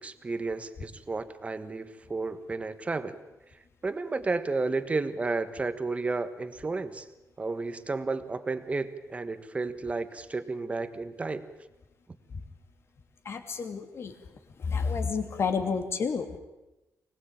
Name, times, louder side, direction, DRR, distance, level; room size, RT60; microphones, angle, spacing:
voice 1, 0.0-3.2 3.8-7.1 7.4-11.4, right 3 dB, 25° right, 11 dB, 1.4 m, -32 dB
voice 2, 13.2-14.2 14.6-16.4, left 5 dB, 50° left, 6 dB, 2.7 m, -30 dB
25.0 x 19.0 x 9.0 m, 1.0 s
wide cardioid pair, 140°, 6 cm